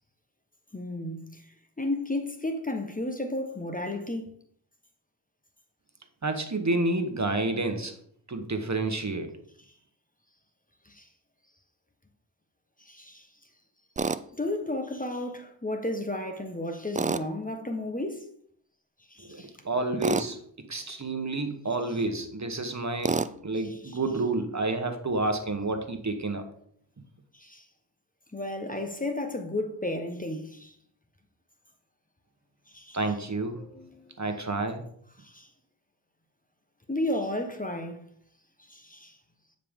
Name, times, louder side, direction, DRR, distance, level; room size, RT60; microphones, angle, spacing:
voice 1, 0.7-1.4 1.8-4.3 10.8-11.1 12.8-13.3 14.4-18.2 19.1-19.5 20.8-20.9 23.8-24.0 27.3-27.6 28.3-30.7 32.7-33.0 33.7-34.1 35.2-35.5 36.9-38.0 38.7-39.2, left 1 dB, 20° left, 1.2 m, -33 dB
voice 2, 6.2-7.9 8.3-9.3 19.2-20.4 20.7-26.4 32.9-33.6 34.2-34.8, right 2 dB, 40° right, 1.2 m, -29 dB
Tools, 14.0-14.2 16.9-17.3 20.0-20.3 23.0-23.3, right 4 dB, 20° right, 0.3 m, -27 dB
9.1 x 5.2 x 3.7 m
cardioid pair, 40°, 46 cm